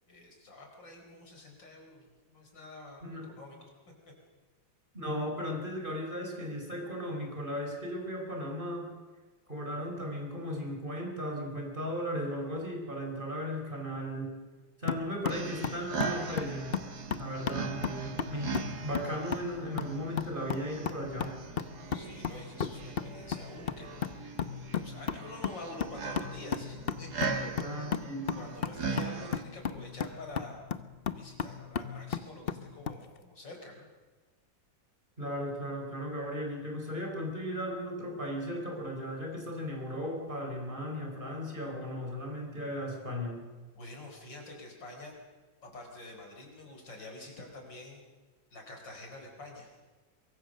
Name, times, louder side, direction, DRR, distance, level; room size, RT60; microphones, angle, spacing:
voice 1, 0.1-3.7 21.9-28.0 28.3-30.6 31.1-33.9 43.7-45.2 45.6-48.1 48.5-49.8, left 2 dB, 70° left, 2 dB, 5.4 m, -47 dB
voice 2, 4.9-8.9 9.5-14.3 14.8-16.7 17.2-21.4 27.6-28.5 35.2-43.5, equal, 25° right, 1 dB, 4.5 m, -36 dB
sound 1, 14.9-33.0, left 7 dB, 45° left, 0.8 m, -36 dB
sound 2, 15.3-29.4, right 5 dB, 55° right, 2.3 m, -40 dB
23.5 x 23.0 x 6.6 m, 1.3 s
omnidirectional pair, 2.1 m